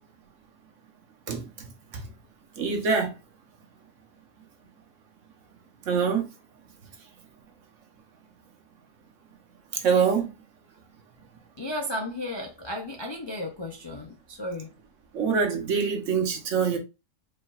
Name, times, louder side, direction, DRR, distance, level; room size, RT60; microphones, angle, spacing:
voice 1, 1.3-1.7 2.0-2.1 2.6-3.1 5.9-6.3 9.7-10.3 15.1-16.8, right 6 dB, 70° right, 1.3 m, -25 dB
voice 2, 11.6-14.7, left 1 dB, 45° left, 0.3 m, -34 dB
5.1 x 3.4 x 2.3 m
omnidirectional pair, 1.4 m